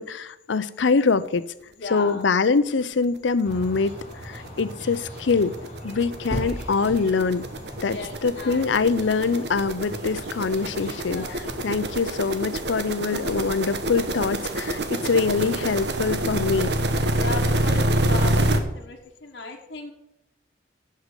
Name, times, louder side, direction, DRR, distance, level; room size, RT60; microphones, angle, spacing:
voice 1, 0.0-1.5 1.9-3.9 4.2-5.6 5.8-7.5 7.8-16.7, left 4 dB, 90° left, 14 dB, 0.6 m, -24 dB
voice 2, 1.7-2.2 7.7-8.7 11.1-11.4 17.1-19.9, left 3 dB, 65° left, -2 dB, 1.4 m, -36 dB
sound 1, 3.2-3.3 3.6-3.7 4.0-18.6, right 1 dB, 65° right, 1.1 m, -27 dB
sound 2, 3.4-12.2, equal, 35° left, 3.8 m, -38 dB
8.2 x 6.6 x 8.2 m, 0.81 s
head